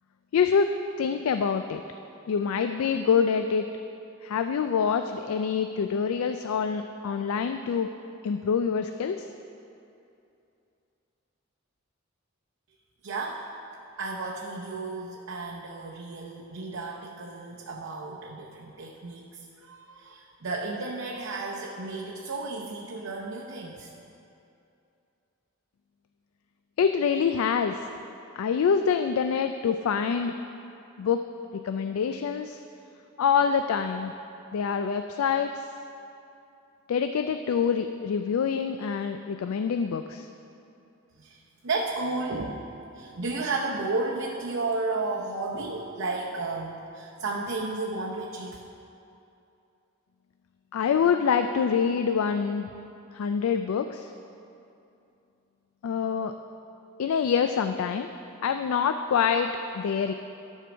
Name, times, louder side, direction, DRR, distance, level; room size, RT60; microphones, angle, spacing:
voice 1, 0.3-1.8 2.3-3.7 4.2-7.9 8.2-9.3 26.8-27.9 28.4-30.3 31.0-31.2 31.6-32.6 33.2-34.1 34.5-35.7 36.9-40.3 50.7-52.7 53.1-54.1 55.8-56.3 57.0-58.1 58.4-59.5 59.7-60.1, left 6 dB, 85° left, 7 dB, 0.3 m, -26 dB
voice 2, 13.0-13.5 14.0-23.9 41.2-42.6 42.9-48.6, right 3 dB, 75° right, -3 dB, 0.7 m, -33 dB
12.5 x 4.6 x 6.1 m, 2.7 s
head